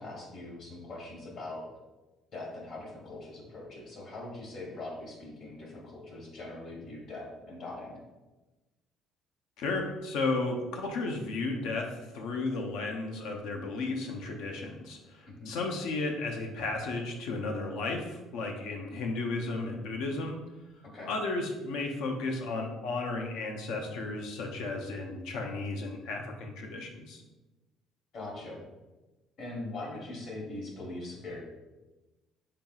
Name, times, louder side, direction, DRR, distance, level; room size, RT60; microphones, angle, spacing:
voice 1, 0.0-1.6 2.3-8.0 15.3-15.5 20.8-21.1 28.1-28.6 29.4-31.4, left 2 dB, 50° left, -2 dB, 1.0 m, -41 dB
voice 2, 9.6-20.5 21.0-27.2, left 3 dB, 80° left, 2 dB, 0.6 m, -34 dB
5.7 x 3.7 x 2.3 m, 1.1 s
cardioid pair, 160°, 0 cm